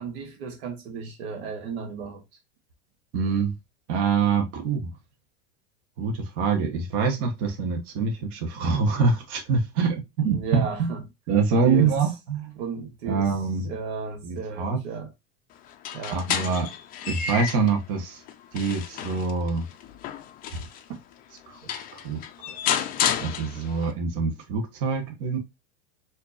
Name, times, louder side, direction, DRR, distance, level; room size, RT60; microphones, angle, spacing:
voice 1, 0.0-2.2 10.2-11.0 11.6-12.1 12.5-13.3 13.6-15.1 15.9-16.2 20.5-21.0, right 5 dB, 70° right, 1.2 m, -34 dB
voice 2, 3.1-3.5 3.9-4.9 6.0-10.9 11.3-12.5 13.1-13.7 14.2-14.8 16.1-16.7 17.1-18.2 18.5-19.6 21.5-22.5 23.2-25.4, right 5 dB, 45° right, 1.1 m, -25 dB
sound 1, 15.7-17.8 18.3-20.8 21.4-21.5 21.7-23.9, left 9 dB, 30° left, 0.4 m, -31 dB
4.4 x 2.7 x 2.5 m
supercardioid pair, 130°, 32 cm